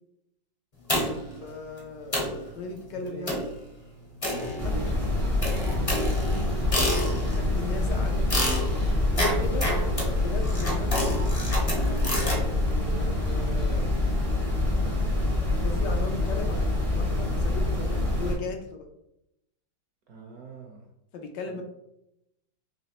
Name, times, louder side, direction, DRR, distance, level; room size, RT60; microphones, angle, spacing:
sound 1, 0.9-1.4 1.8-1.9 2.1-2.4 3.3-3.6 4.2-4.9 5.4-7.4 8.3-12.4, left 1 dB, 35° left, 0.6 m, -29 dB
voice 1, 1.4-2.3 2.5-3.4 4.6-4.7 6.7-6.9 7.3-8.5 9.1-9.7 10.2-11.1 12.2-13.9 15.6-18.8 21.1-21.6, left 3 dB, 75° left, 4 dB, 1.2 m, -37 dB
voice 2, 2.9-3.4 4.3-6.3 6.6-7.3 20.1-20.9 21.5-21.6, right 3 dB, 60° right, 1 dB, 1.0 m, -43 dB
sound 2, 4.4-14.0, left 3 dB, 55° left, 1.0 m, -43 dB
sound 3, 4.6-18.4, left 2 dB, 30° right, 0.6 m, -26 dB
4.2 x 3.1 x 2.8 m, 0.82 s
omnidirectional pair, 2.0 m